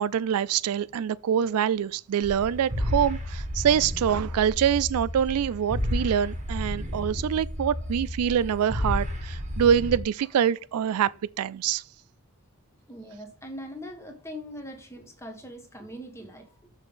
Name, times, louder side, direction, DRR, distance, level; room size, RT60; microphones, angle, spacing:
voice 1, 0.0-11.1 11.4-11.8, right 8 dB, 80° right, 0.3 m, -25 dB
synthesizer Galactic Empire Jedi Knights, 2.2-10.0, equal, 30° right, 1.6 m, -31 dB
voice 2, 12.9-16.7, equal, 10° left, 1.4 m, -41 dB
6.6 x 6.0 x 3.8 m
head